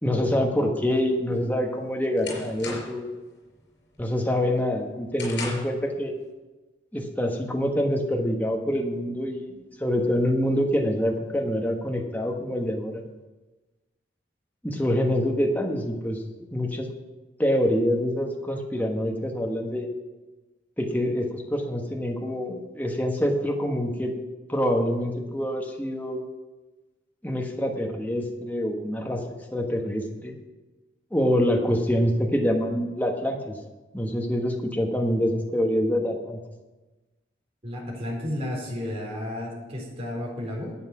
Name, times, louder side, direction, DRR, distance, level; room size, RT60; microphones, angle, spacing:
voice 1, 0.0-3.1 4.0-6.1 6.9-9.5 9.8-13.0 14.6-16.2 16.5-16.9 17.4-19.9 20.8-24.1 24.5-26.2 27.2-30.3 31.1-33.6 33.9-36.4, equal, 10° left, 2 dB, 1.3 m, -26 dB
sound 1, 1.4-3.1 3.5-3.9 4.3-5.8, left 3 dB, 80° left, 4.9 m, -38 dB
voice 2, 37.6-40.8, left 1 dB, 35° right, -3 dB, 3.9 m, -32 dB
11.5 x 8.2 x 6.0 m, 1.2 s
head